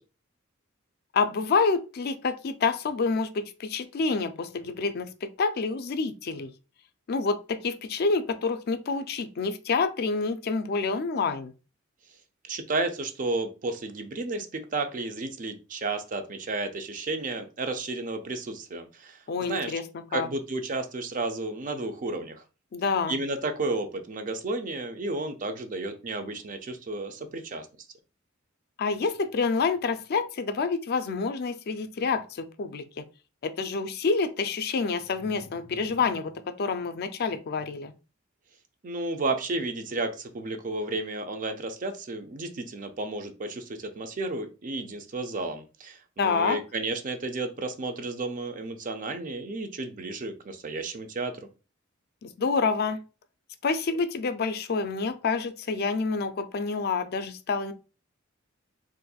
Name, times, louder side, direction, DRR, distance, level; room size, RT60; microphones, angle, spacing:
voice 1, 1.1-6.5 7.1-11.5 19.3-19.8 20.1-20.3 22.7-23.1 28.8-33.0 33.4-36.3 36.6-37.9 46.2-46.6 52.2-53.0 53.6-57.7, left 4 dB, 50° left, 0.4 m, -28 dB
voice 2, 12.5-19.2 19.5-19.7 20.1-22.4 23.1-27.7 38.8-51.5, right 2 dB, 40° right, 0.5 m, -32 dB
4.1 x 2.6 x 2.3 m
head